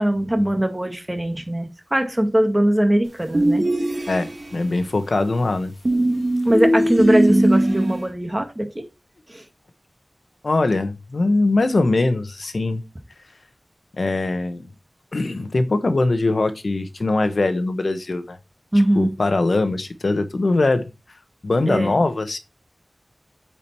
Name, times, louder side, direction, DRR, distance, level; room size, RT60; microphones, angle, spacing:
voice 1, 0.0-3.6 6.4-8.9 9.3-9.4 18.7-19.1 21.7-22.0, right 1 dB, 25° right, 2.0 m, -21 dB
sound 1, 3.3-4.6 5.8-8.0, right 1 dB, 45° right, 2.0 m, -19 dB
voice 2, 4.1-5.7 10.4-12.8 14.0-14.7 15.1-18.4 18.9-20.8 21.4-22.4, left 2 dB, 80° left, 1.2 m, -21 dB
8.8 x 5.0 x 4.5 m
wide cardioid pair, 55°, 0 cm